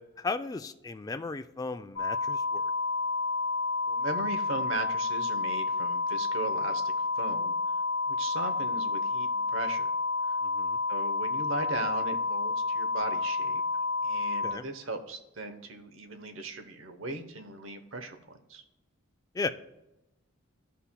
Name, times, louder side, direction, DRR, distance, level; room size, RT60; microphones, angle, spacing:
voice 1, 0.2-2.6 10.4-10.8 14.4-14.6 19.3-19.5, left 3 dB, 20° left, 9 dB, 0.3 m, -35 dB
sound 1, 2.0-14.5, left 3 dB, 70° left, 1.1 m, -30 dB
voice 2, 3.9-7.5 8.1-9.9 10.3-10.4 10.9-13.6 14.0-18.6, right 2 dB, 75° right, 7 dB, 0.9 m, -38 dB
13.5 x 5.6 x 2.2 m, 0.93 s
head